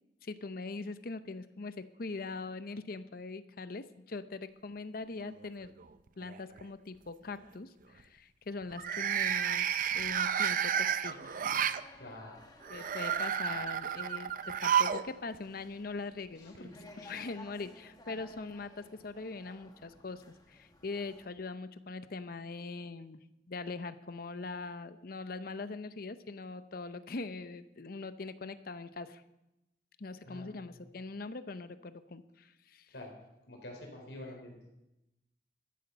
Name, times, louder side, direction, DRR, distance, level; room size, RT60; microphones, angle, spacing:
voice 1, 0.2-5.7 6.2-11.7 12.7-16.7 17.0-29.2 30.0-32.9, left 3 dB, 55° left, 12 dB, 0.7 m, -42 dB
sound 1, 5.2-5.8 6.2-6.6 8.7-11.8 12.6-15.1 15.3-15.4 16.6-16.7, right 8 dB, 50° right, 0.5 m, -31 dB
sound 2, 11.2-21.3, left 2 dB, 25° left, 1.6 m, -56 dB
voice 2, 12.0-12.4 16.4-17.0 30.2-30.9 32.9-33.2 33.5-34.5, left 1 dB, 85° left, 1 dB, 4.4 m, -48 dB
13.5 x 10.0 x 6.8 m, 0.92 s
head